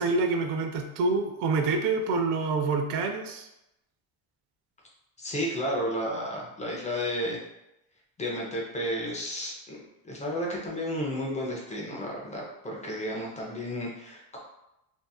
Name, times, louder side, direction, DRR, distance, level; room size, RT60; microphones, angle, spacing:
voice 1, 0.0-3.5, right 3 dB, 70° right, 4 dB, 0.5 m, -27 dB
voice 2, 5.2-7.4 8.2-9.8 10.0-14.4, equal, 15° left, -3 dB, 0.4 m, -32 dB
2.7 x 2.3 x 2.2 m, 0.88 s
cardioid pair, 120°, 43 cm